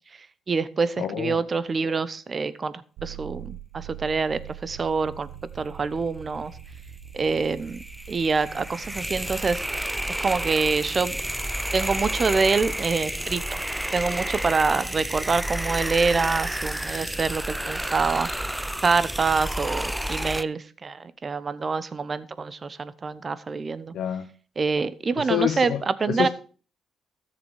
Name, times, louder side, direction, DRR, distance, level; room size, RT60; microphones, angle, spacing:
voice 1, 0.1-5.3 5.5-6.5 7.1-9.7 10.2-11.2 11.7-13.6 13.9-18.3 18.8-23.9 24.6-26.3, right 4 dB, 40° right, 16 dB, 0.9 m, -26 dB
voice 2, 1.0-1.4 23.9-24.3 25.2-26.3, left 10 dB, 75° left, 7 dB, 0.7 m, -27 dB
sound 1, 3.0-9.8, right 10 dB, 80° right, 1.0 m, -43 dB
sound 2, 7.3-20.4, right 1 dB, 5° right, 0.4 m, -30 dB
13.5 x 7.1 x 4.8 m, 0.38 s
cardioid pair, 75°, 0 cm